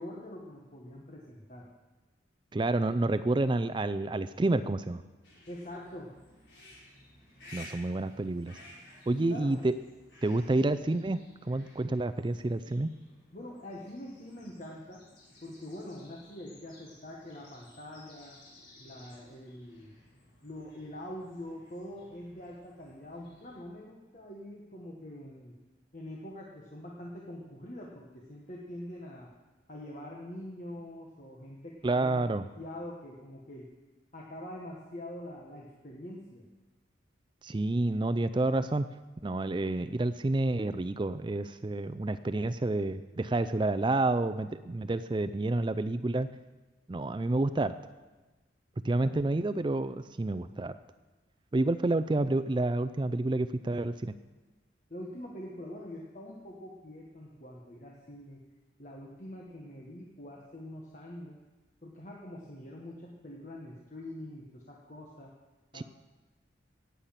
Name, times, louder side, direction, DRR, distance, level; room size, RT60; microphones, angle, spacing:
voice 1, 0.0-1.7 5.5-6.1 9.1-9.6 13.3-15.0 15.4-18.4 18.8-20.0 20.4-25.6 25.9-29.3 29.7-33.7 34.1-36.5 54.9-58.4 58.8-61.4 61.8-65.3 65.7-65.8, left 1 dB, 40° left, -2 dB, 1.4 m, -44 dB
voice 2, 2.5-5.0 7.5-8.6 9.1-9.7 10.2-12.9 31.8-32.4 37.4-38.9 39.2-46.3 46.9-47.7 48.8-50.7 51.5-54.2 65.7-65.8, right 2 dB, 25° right, 12 dB, 0.4 m, -29 dB
sound 1, 5.2-23.6, left 2 dB, 70° left, 4.6 m, -56 dB
17.5 x 8.3 x 5.8 m, 1.2 s
head